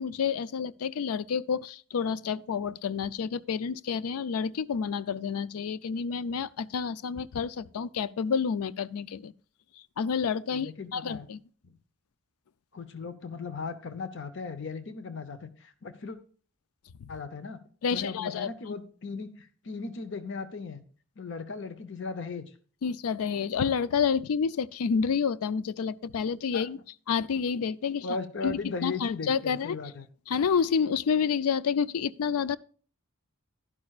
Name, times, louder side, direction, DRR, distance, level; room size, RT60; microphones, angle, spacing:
voice 1, 0.0-9.3 10.0-11.4 17.0-17.1 17.8-18.5 22.8-26.8 27.1-28.1 28.4-29.8 30.3-32.6, left 6 dB, 80° left, 0.4 m, -29 dB
voice 2, 10.5-11.3 11.6-11.7 12.7-16.2 17.1-17.6 17.9-20.8 21.2-22.5 26.5-26.6 28.0-30.1, left 4 dB, 55° left, 0.7 m, -37 dB
11.0 x 11.0 x 2.4 m
head